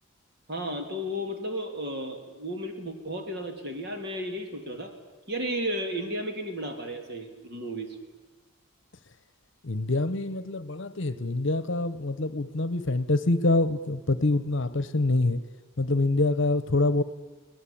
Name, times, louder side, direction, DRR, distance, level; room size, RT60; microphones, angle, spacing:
voice 1, 0.5-4.9 5.3-8.0, equal, 50° right, 5 dB, 3.2 m, -33 dB
voice 2, 9.6-15.4 15.8-17.0, left 2 dB, 60° left, 15 dB, 1.0 m, -25 dB
24.5 x 18.5 x 8.8 m, 1.2 s
head